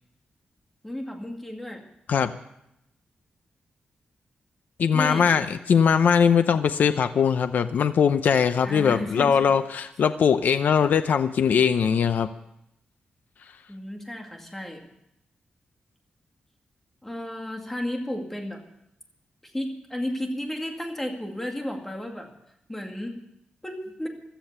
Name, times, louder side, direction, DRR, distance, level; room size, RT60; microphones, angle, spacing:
voice 1, 0.8-1.8 4.9-5.5 8.6-9.5 13.7-14.8 17.0-18.6 19.4-22.3 22.7-23.2 23.6-24.1, left 1 dB, 10° left, 2 dB, 2.3 m, -33 dB
voice 2, 4.8-12.3, left 7 dB, 70° left, 10 dB, 0.7 m, -21 dB
16.0 x 12.5 x 6.8 m, 0.80 s
wide cardioid pair, 150°, 3 cm